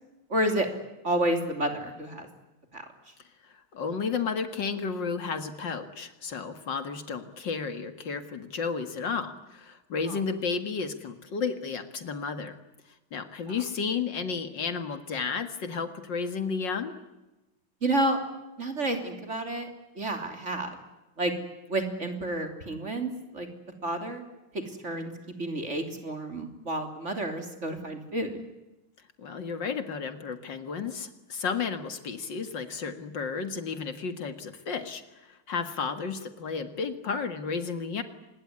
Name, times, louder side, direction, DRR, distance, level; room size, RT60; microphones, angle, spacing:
voice 1, 0.3-0.7 1.0-2.3 2.7-2.8 10.1-10.2 13.5-13.6 17.8-18.2 18.6-19.7 20.0-20.8 21.2-21.3 21.7-23.5 23.8-24.2 24.5-25.1 25.4-28.4, right 1 dB, 35° right, 5 dB, 3.6 m, -30 dB
voice 2, 3.4-12.6 13.1-16.9 29.2-38.0, left 5 dB, 65° left, 9 dB, 2.5 m, -32 dB
25.5 x 21.0 x 9.8 m, 1.0 s
omnidirectional pair, 2.2 m